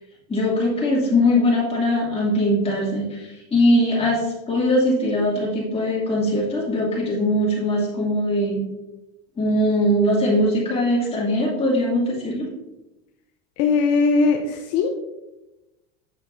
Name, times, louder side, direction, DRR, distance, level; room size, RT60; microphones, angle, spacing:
voice 1, 0.3-8.6 9.4-12.5, left 1 dB, 15° left, -5 dB, 2.6 m, -21 dB
voice 2, 13.6-14.9, left 4 dB, 55° left, 3 dB, 0.8 m, -19 dB
8.0 x 6.4 x 2.7 m, 0.97 s
supercardioid pair, 135°, 36 cm